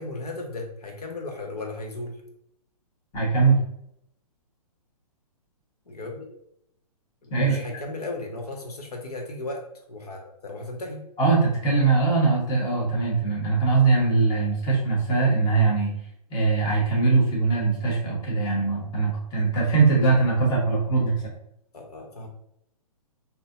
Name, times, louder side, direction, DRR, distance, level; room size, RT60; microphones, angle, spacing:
voice 1, 0.0-2.2 5.9-6.3 7.2-9.6 9.9-11.0 21.7-22.3, left 2 dB, 80° left, 1 dB, 1.0 m, -35 dB
voice 2, 3.1-3.6 7.3-7.6 11.2-15.9 16.3-21.3, right 4 dB, 20° left, -4 dB, 1.2 m, -21 dB
3.9 x 2.8 x 2.5 m, 0.75 s
hypercardioid pair, 135°, 19 cm